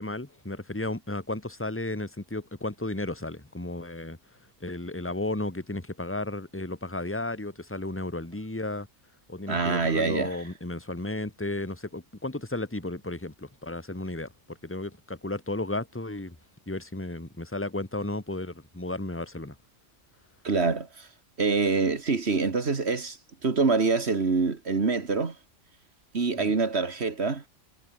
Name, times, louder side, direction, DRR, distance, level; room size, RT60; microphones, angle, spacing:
voice 1, 0.0-4.2 4.6-8.9 9.3-16.4 16.7-19.6 26.4-26.5, left 2 dB, 10° left, 2.1 m, -34 dB
voice 2, 9.5-10.4 20.4-21.1 21.4-23.2 23.4-25.3 26.1-27.4, right 4 dB, 55° right, 2.1 m, -25 dB
omnidirectional pair, 1.3 m